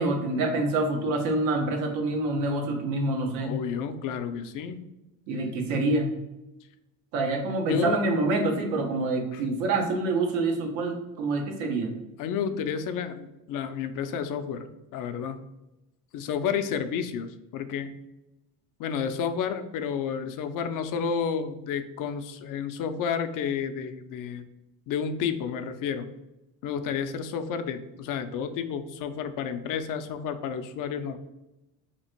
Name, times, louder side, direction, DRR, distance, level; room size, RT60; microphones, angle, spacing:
voice 1, 0.0-3.6 5.3-6.1 7.1-11.9, right 2 dB, 90° right, 3 dB, 0.9 m, -26 dB
voice 2, 3.4-4.8 7.6-8.0 9.3-9.4 12.2-15.4 16.1-17.9 18.8-24.4 24.9-26.1 26.6-31.2, left 7 dB, 55° left, 9 dB, 0.5 m, -31 dB
3.0 x 2.5 x 4.3 m, 0.97 s
supercardioid pair, 90°, 39 cm